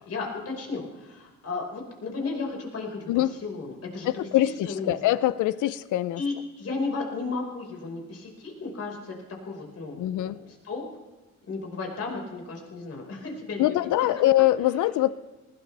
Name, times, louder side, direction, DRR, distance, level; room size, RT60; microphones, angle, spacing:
voice 1, 0.0-3.1 3.4-4.3 4.7-4.9 6.2-9.1 9.4-10.8 11.5-13.7, left 3 dB, 55° left, 0 dB, 5.0 m, -34 dB
voice 2, 4.0-6.2 10.0-10.4 13.6-15.1, left 14 dB, 80° left, 16 dB, 0.6 m, -23 dB
20.0 x 16.5 x 3.4 m, 1.1 s
cardioid pair, 90°, 30 cm